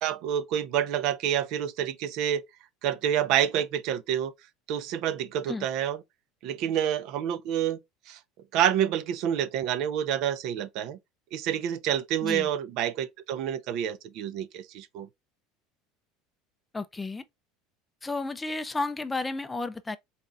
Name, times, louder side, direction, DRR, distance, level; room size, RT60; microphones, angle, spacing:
voice 1, 0.0-2.4 2.8-4.3 4.7-6.0 6.4-7.8 8.1-8.2 8.5-11.0 11.3-15.1, right 10 dB, 60° right, 0.5 m, -28 dB
voice 2, 16.7-17.2 18.0-20.0, left 3 dB, 15° left, 0.4 m, -32 dB
4.1 x 2.4 x 3.4 m
supercardioid pair, 120°, 0 cm